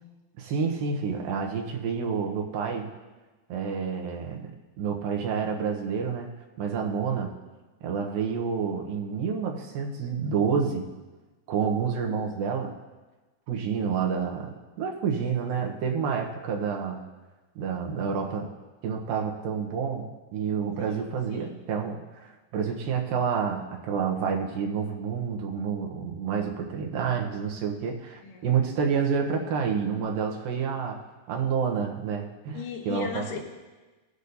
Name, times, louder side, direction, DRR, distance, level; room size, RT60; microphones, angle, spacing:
voice 1, 0.4-2.9 3.5-4.5 4.8-6.3 6.6-7.3 7.8-10.9 11.5-12.8 13.5-17.0 17.6-18.5 18.8-31.0 31.3-33.2, right 6 dB, 90° right, 1 dB, 2.8 m, -29 dB
voice 2, 20.8-21.6 28.2-28.6 32.5-33.4, left 5 dB, 70° left, 2 dB, 2.6 m, -38 dB
18.0 x 8.2 x 2.7 m, 1.2 s
omnidirectional pair, 4.0 m